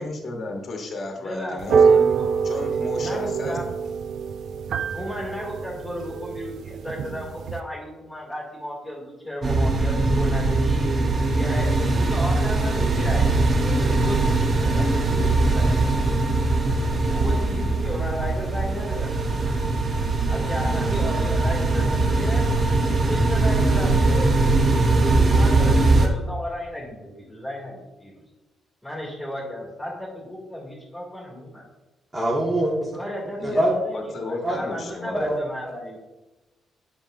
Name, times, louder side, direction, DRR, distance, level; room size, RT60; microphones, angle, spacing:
voice 1, 0.0-2.0 2.4-3.6 33.4-33.6 33.9-35.3, left 2 dB, 55° left, 2 dB, 1.0 m, -33 dB
voice 2, 1.2-3.7 4.9-10.9 11.3-15.9 17.1-19.1 20.3-22.4 23.0-24.3 24.6-24.8 25.1-28.2 28.8-31.6 32.9-36.0, equal, ahead, -7 dB, 2.1 m, -34 dB
sound 1, 1.6-7.6, right 6 dB, 70° right, 0.4 m, -24 dB
sound 2, 9.4-26.1, right 2 dB, 45° right, 0.8 m, -21 dB
voice 3, 32.1-32.9 33.4-33.7 34.4-34.6 35.1-35.3, right 1 dB, 20° right, -5 dB, 1.4 m, -23 dB
7.1 x 5.3 x 2.5 m, 1.1 s
cardioid pair, 75°, 0 cm